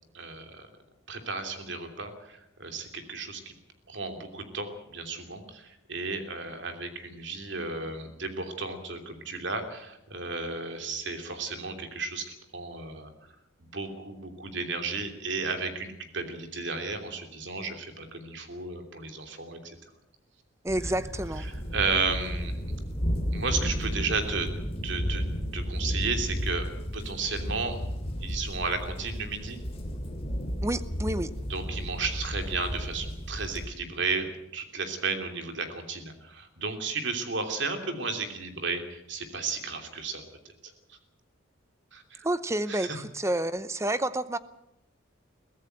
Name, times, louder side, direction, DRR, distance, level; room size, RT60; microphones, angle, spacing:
voice 1, 0.1-0.7 1.1-3.5 3.9-12.3 12.5-13.1 13.6-19.7 21.7-22.6 23.3-24.5 24.8-25.2 25.5-26.7 26.9-27.8 28.2-29.6 31.5-40.2 40.6-40.7 41.9-42.3 42.7-43.0, right 4 dB, 60° right, 6 dB, 2.9 m, -33 dB
voice 2, 20.6-21.5 30.6-31.3 42.2-44.4, right 1 dB, 15° right, 14 dB, 0.7 m, -29 dB
sound 1, 20.7-33.7, equal, 30° left, 2.8 m, -33 dB
22.5 x 16.0 x 7.9 m, 0.87 s
head